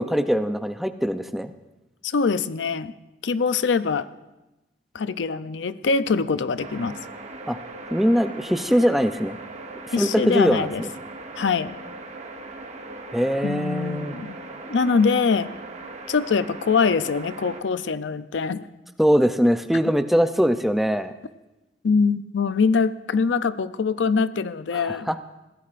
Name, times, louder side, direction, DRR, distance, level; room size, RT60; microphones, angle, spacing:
voice 1, 0.0-1.5 7.5-7.6 7.9-9.3 10.0-10.9 13.1-14.2 19.0-21.1 24.7-25.2, equal, ahead, 9 dB, 0.4 m, -22 dB
voice 2, 2.0-2.9 3.2-4.1 4.9-7.0 9.9-10.8 11.4-11.8 13.4-14.4 14.7-15.5 16.1-18.7 21.8-25.1, left 5 dB, 85° left, 14 dB, 0.5 m, -23 dB
sound 1, 6.6-17.6, right 3 dB, 40° right, 1.0 m, -39 dB
21.0 x 16.0 x 2.5 m, 1.0 s
head